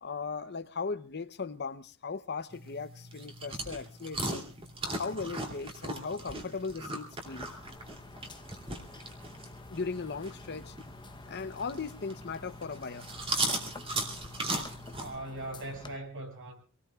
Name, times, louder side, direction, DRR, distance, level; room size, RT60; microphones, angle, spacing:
voice 1, 0.0-4.4 5.0-7.5 9.7-10.8 11.3-13.1, left 4 dB, 50° left, 11 dB, 0.8 m, -37 dB
sound 1, 2.5-15.1, right 2 dB, 25° right, 2.9 m, -38 dB
sound 2, 7.2-16.0, left 2 dB, 20° left, 0.9 m, -50 dB
voice 2, 15.0-16.5, right 2 dB, 60° right, 2 dB, 6.6 m, -40 dB
26.5 x 19.0 x 2.4 m, 0.37 s
head